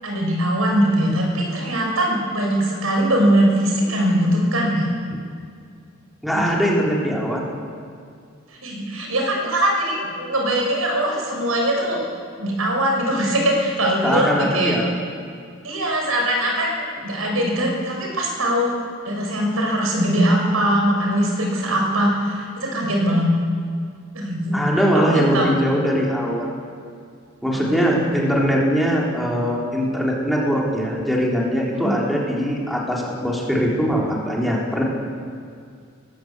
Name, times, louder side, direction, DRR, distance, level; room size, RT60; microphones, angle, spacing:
voice 1, 0.0-4.9 6.3-6.4 8.5-12.1 12.4-14.8 15.6-18.7 19.0-23.3 24.1-24.6 24.9-25.5 27.5-27.9 31.7-31.9, right 1 dB, 80° right, 0 dB, 6.3 m, -21 dB
voice 2, 6.2-7.4 14.0-14.9 24.5-26.5 27.4-34.8, equal, ahead, -4 dB, 3.8 m, -21 dB
20.0 x 19.0 x 8.2 m, 2.3 s
head